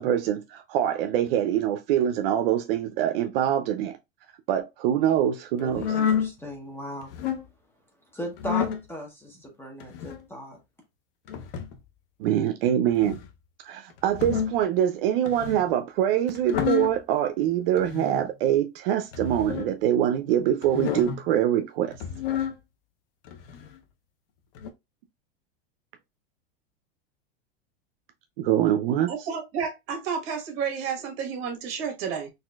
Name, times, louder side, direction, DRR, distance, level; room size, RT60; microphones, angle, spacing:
voice 1, 0.0-4.0 4.5-5.8 12.2-13.2 13.6-22.0 28.4-29.1, right 10 dB, 70° right, 0.5 m, -24 dB
voice 2, 5.6-7.1 8.1-10.6, left 1 dB, 10° left, 0.8 m, -37 dB
sound 1, 5.7-6.3 7.0-7.5 8.4-8.8 9.8-10.2 11.3-11.8 12.9-13.3 14.0-14.6 15.3-15.7 16.3-17.0 17.8-18.3 19.1-19.7 20.6-21.2 21.9-22.6 23.3-23.8 24.6-24.7, left 8 dB, 65° left, 0.7 m, -29 dB
voice 3, 29.1-32.3, right 6 dB, 45° right, 1.4 m, -31 dB
4.1 x 2.5 x 2.3 m
supercardioid pair, 145°, 30 cm